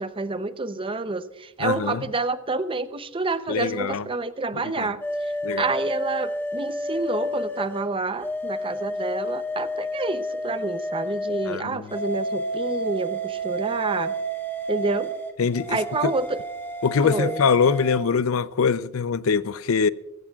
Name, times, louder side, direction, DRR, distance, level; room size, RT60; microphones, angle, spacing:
voice 1, 0.0-5.0 5.6-14.1 14.7-15.1 15.7-16.4 17.0-17.5, right 3 dB, 25° right, 0.7 m, -28 dB
voice 2, 1.6-2.0 3.5-4.1 4.6-4.9 5.4-5.7 11.5-11.9 15.4-16.1 16.8-19.9, left 5 dB, 80° left, 0.5 m, -23 dB
sound 1, 5.0-7.8 8.2-11.5 11.9-18.0, equal, 10° left, 1.7 m, -30 dB
22.5 x 16.0 x 2.4 m
head